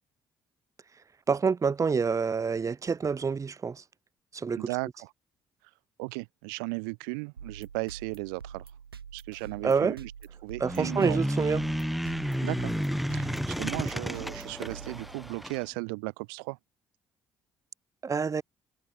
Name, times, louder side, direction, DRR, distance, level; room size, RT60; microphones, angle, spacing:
voice 1, 1.3-3.8 4.3-4.7 9.6-9.9 10.6-11.6 18.0-18.4, right 5 dB, 25° right, 0.6 m, -27 dB
voice 2, 4.6-5.1 5.6-8.7 9.1-10.1 10.4-11.2 12.4-12.7 13.1-16.6, right 33 dB, 70° right, 0.8 m, -36 dB
sound 1, 7.4-15.5, right 7 dB, 90° right, 1.3 m, -46 dB
sound 2, 10.6-15.6, equal, ahead, 2.7 m, -31 dB
figure-of-eight pair, 45°, 12 cm